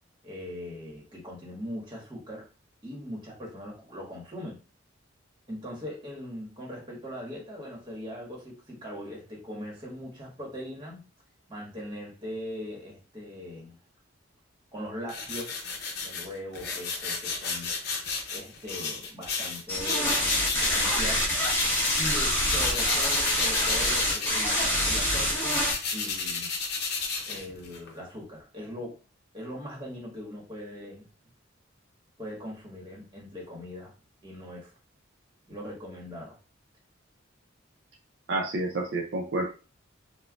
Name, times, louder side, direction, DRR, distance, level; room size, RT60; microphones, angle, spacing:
voice 1, 0.2-2.5 2.8-4.6 5.5-11.1 11.5-13.8 14.7-15.6 16.0-17.7 18.3-20.3 20.6-21.3 22.0-25.6 25.9-26.5 27.3-29.0 29.3-31.1 32.2-33.9 34.2-34.7 35.5-36.4, left 1 dB, 25° right, -2 dB, 1.2 m, -40 dB
sound 1, 15.1-22.2 22.4-27.9, left 4 dB, 55° left, 0.7 m, -33 dB
sound 2, 19.7-25.7, left 1 dB, 15° left, 1.4 m, -26 dB
voice 2, 38.3-39.4, right 2 dB, 60° right, 0 dB, 0.5 m, -29 dB
4.3 x 2.1 x 2.3 m, 0.33 s
head